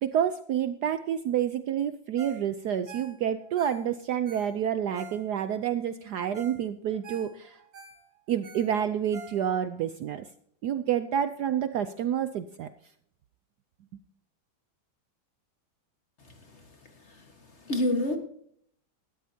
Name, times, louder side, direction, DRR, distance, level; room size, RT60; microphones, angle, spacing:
voice 1, 0.0-7.6 8.3-10.3 10.6-12.7, right 9 dB, 70° right, 11 dB, 1.0 m, -29 dB
Ringtone, 2.2-2.5 2.7-5.6 6.0-6.1 6.3-6.6 6.9-9.8 10.2-10.3, right 4 dB, 50° right, 2.2 m, -47 dB
voice 2, 16.2-16.7 17.0-17.3 17.6-18.2, left 1 dB, 35° left, 5 dB, 1.6 m, -29 dB
18.0 x 13.0 x 2.8 m, 0.67 s
omnidirectional pair, 2.2 m